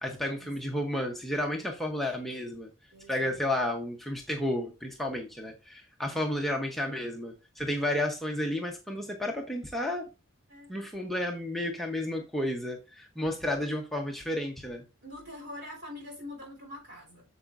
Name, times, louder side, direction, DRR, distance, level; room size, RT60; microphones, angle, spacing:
voice 1, 0.0-2.7 3.1-10.1 10.7-14.8, left 1 dB, ahead, 0.8 m, -32 dB
voice 2, 2.9-3.4 6.1-6.3 10.5-10.7 13.4-13.7 15.0-17.2, left 1 dB, 50° right, 3.6 m, -45 dB
8.6 x 7.0 x 2.5 m
head